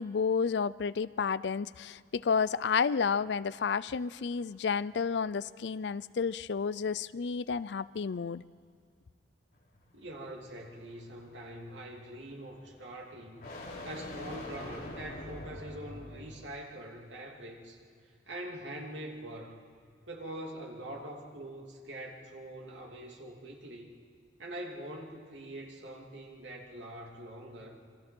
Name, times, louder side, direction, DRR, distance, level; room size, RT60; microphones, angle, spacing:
voice 1, 0.0-8.4, left 5 dB, 70° left, 18 dB, 0.4 m, -31 dB
sound 1, 9.5-16.6, left 1 dB, 55° left, 3.8 m, -46 dB
voice 2, 9.9-13.5 13.8-17.8 18.3-19.6 20.1-23.9 24.4-27.8, right 1 dB, 85° right, 0 dB, 2.9 m, -44 dB
28.0 x 24.0 x 4.5 m, 2.1 s
head